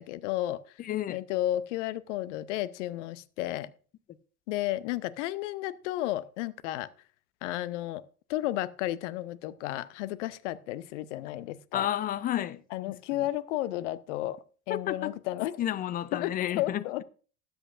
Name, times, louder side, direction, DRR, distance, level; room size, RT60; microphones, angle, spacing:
voice 1, 0.0-0.6 1.1-3.7 4.5-6.9 7.4-8.0 8.3-11.9 12.7-14.4 14.7-15.6 16.1-17.0, left 15 dB, 55° left, 0.8 m, -32 dB
voice 2, 0.8-1.2 11.7-13.2 14.7-15.1 15.6-17.0, left 11 dB, 20° left, 0.4 m, -32 dB
19.5 x 8.0 x 2.5 m
figure-of-eight pair, 75°, 44 cm